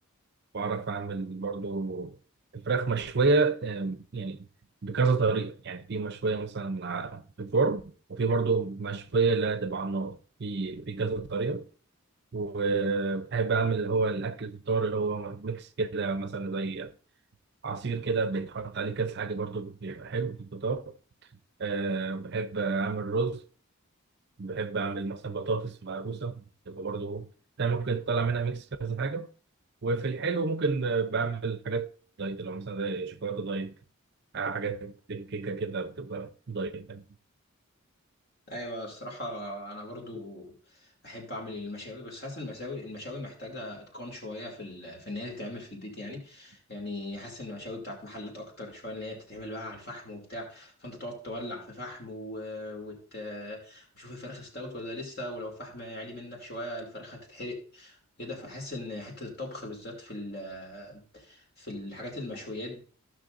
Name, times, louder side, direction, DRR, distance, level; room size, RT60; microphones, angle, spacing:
voice 1, 0.5-2.2 2.5-4.5 4.8-11.7 12.3-16.9 17.6-20.9 21.6-23.4 24.4-27.3 27.6-29.3 29.8-31.9 32.2-33.7 34.3-37.0 46.1-46.2, right 4 dB, 50° right, 0.6 m, -30 dB
voice 2, 38.5-62.8, left 1 dB, 45° left, 2.6 m, -39 dB
15.5 x 6.0 x 2.5 m
head